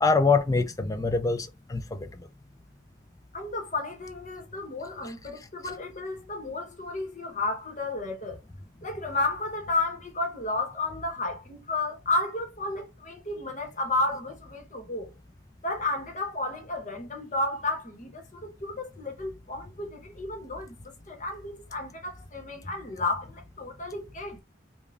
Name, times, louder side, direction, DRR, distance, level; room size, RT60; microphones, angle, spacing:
voice 1, 0.0-2.3, left 4 dB, 20° left, 0.4 m, -25 dB
voice 2, 3.3-8.4 8.8-15.1 15.6-24.4, left 2 dB, 40° left, 1.0 m, -32 dB
5.1 x 2.3 x 2.4 m
head